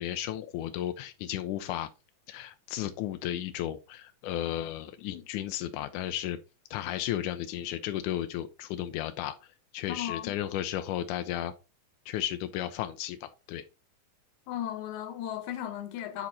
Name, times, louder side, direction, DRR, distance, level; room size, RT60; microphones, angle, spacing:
voice 1, 0.0-1.9 2.3-6.4 6.7-9.4 9.7-11.5 12.1-13.7, left 12 dB, 85° left, 1.9 m, -34 dB
voice 2, 9.9-10.4 14.5-16.3, left 11 dB, 65° left, 2.3 m, -36 dB
8.6 x 4.3 x 4.1 m
omnidirectional pair, 4.1 m